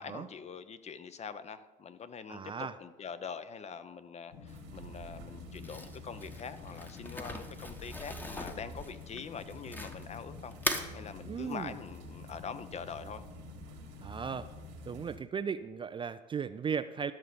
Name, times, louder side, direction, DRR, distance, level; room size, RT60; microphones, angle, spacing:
voice 1, 0.0-10.6 10.9-13.3, left 6 dB, 30° left, 12 dB, 0.7 m, -44 dB
voice 2, 2.3-2.8 11.3-11.8 14.0-14.5 14.9-17.1, right 6 dB, 25° right, 11 dB, 0.4 m, -36 dB
sound 1, 4.3-15.1, left 3 dB, 75° left, 1.6 m, -48 dB
sound 2, 4.5-15.2, right 8 dB, 75° right, 1.9 m, -56 dB
Crumpling crinkling, 5.6-10.2 10.5-10.9, left 1 dB, 10° left, 1.1 m, -39 dB
12.5 x 6.4 x 5.2 m, 1.2 s
hypercardioid pair, 75°, 21 cm